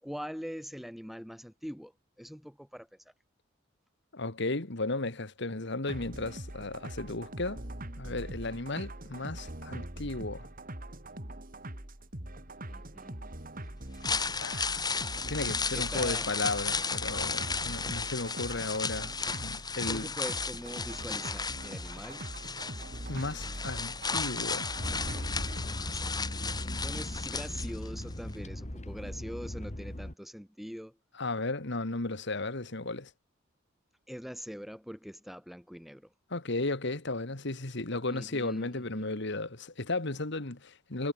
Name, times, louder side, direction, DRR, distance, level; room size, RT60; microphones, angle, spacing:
voice 1, 0.0-3.1 12.7-13.2 15.7-16.3 19.8-22.3 25.6-31.0 34.1-36.1 38.0-39.2, equal, ahead, 7.6 m, -43 dB
voice 2, 4.1-7.6 8.0-10.5 14.4-14.8 15.3-20.1 23.1-24.7 31.2-33.1 36.3-41.1, left 2 dB, 65° left, 2.1 m, -35 dB
sound 1, 5.9-25.7, right 1 dB, 45° right, 3.8 m, -42 dB
sound 2, 13.8-28.0 28.3-28.4, left 5 dB, 20° left, 5.7 m, -34 dB
sound 3, 24.8-30.1, left 1 dB, 35° left, 2.0 m, -38 dB
head